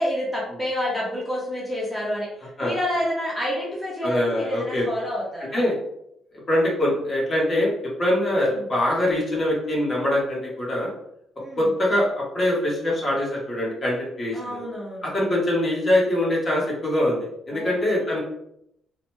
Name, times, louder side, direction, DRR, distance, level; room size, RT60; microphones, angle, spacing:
voice 1, 0.0-2.3 2.6-5.7 8.5-8.6 11.4-11.7 14.3-15.1 17.5-17.8, equal, ahead, -6 dB, 1.1 m, -28 dB
voice 2, 4.0-4.9 5.5-5.7 6.5-7.7 8.0-10.9 11.6-14.6 15.0-18.2, left 1 dB, 40° left, -5 dB, 1.5 m, -23 dB
3.9 x 3.0 x 2.2 m, 0.77 s
cardioid pair, 90°, 0 cm